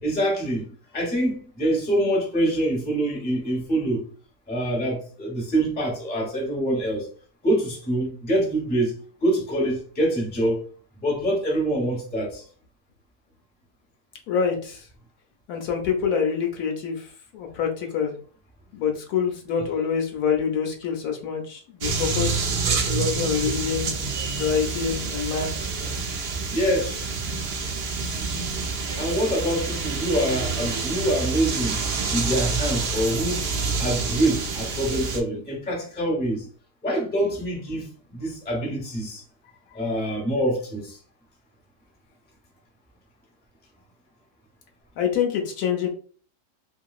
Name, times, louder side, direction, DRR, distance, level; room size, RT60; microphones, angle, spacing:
voice 1, 0.0-4.0 4.5-7.1 7.4-8.9 9.2-10.6 11.0-12.4 26.5-27.1 29.0-31.8 32.1-33.4 33.8-36.5 36.8-39.2 39.7-41.0, right 1 dB, 10° left, 0.7 m, -25 dB
voice 2, 14.3-14.8 15.5-17.1 17.3-18.1 18.7-23.9 24.4-25.5 45.0-45.9, left 7 dB, 75° left, 1.1 m, -26 dB
sound 1, 21.8-35.2, right 4 dB, 80° right, 0.5 m, -28 dB
3.0 x 2.8 x 2.4 m
omnidirectional pair, 1.7 m